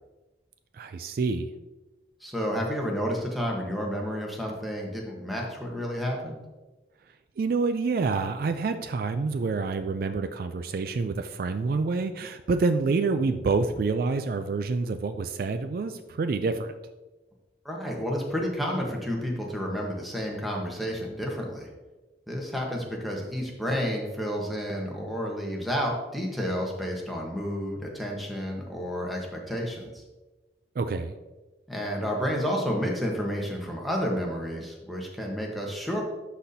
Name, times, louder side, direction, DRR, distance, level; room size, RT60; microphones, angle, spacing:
voice 1, 0.7-1.5 7.4-16.7 30.8-31.1, right 4 dB, 55° right, 9 dB, 0.3 m, -27 dB
voice 2, 2.2-6.4 17.6-21.7 22.3-30.0 31.7-36.0, equal, ahead, -1 dB, 1.1 m, -30 dB
11.5 x 4.1 x 2.7 m, 1.1 s
head